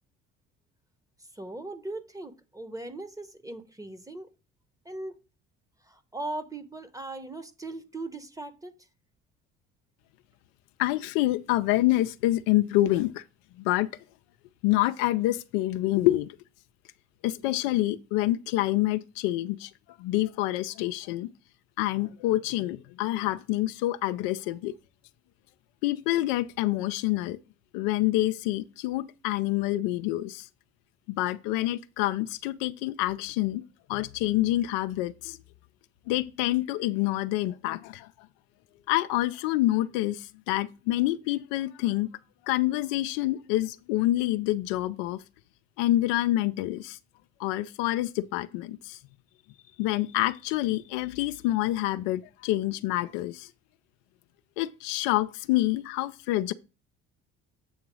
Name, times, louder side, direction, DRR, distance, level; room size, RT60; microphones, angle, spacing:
voice 1, 1.3-4.3 4.8-5.2 5.8-8.7, right 2 dB, 10° right, 0.9 m, -39 dB
voice 2, 10.8-13.2 13.6-13.9 14.6-16.3 17.2-19.7 20.0-21.3 21.8-24.7 25.8-27.4 27.7-30.5 31.1-33.6 33.9-35.4 36.1-38.1 38.9-42.1 42.5-45.2 45.8-47.0 47.4-49.0 49.8-53.5 54.6-56.5, left 16 dB, 80° left, 0.5 m, -27 dB
8.0 x 2.9 x 6.2 m
hypercardioid pair, 65°, 33 cm